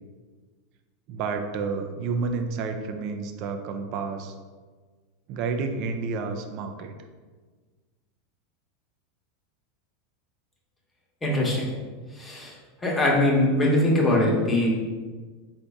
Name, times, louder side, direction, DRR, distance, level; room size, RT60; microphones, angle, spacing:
voice 1, 1.1-4.4 5.3-6.9, right 4 dB, 55° right, 6 dB, 0.4 m, -30 dB
voice 2, 11.2-11.7 12.1-12.6 12.8-14.7, left 1 dB, 15° left, -3 dB, 1.0 m, -22 dB
3.7 x 2.6 x 3.4 m, 1.4 s
hypercardioid pair, 115°, 0 cm